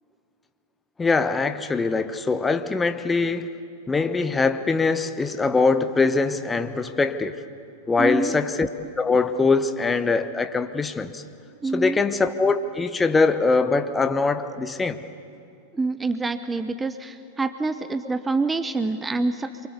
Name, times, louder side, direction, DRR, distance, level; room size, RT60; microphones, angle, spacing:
voice 1, 1.0-3.5 3.9-7.4 7.9-8.7 9.0-11.2 11.7-15.0, left 4 dB, 10° left, 9 dB, 1.0 m, -22 dB
voice 2, 8.0-8.3 11.6-12.0 15.7-19.7, right 3 dB, 10° right, 11 dB, 0.9 m, -26 dB
27.5 x 23.5 x 8.3 m, 2.6 s
figure-of-eight pair, 95°, 0 cm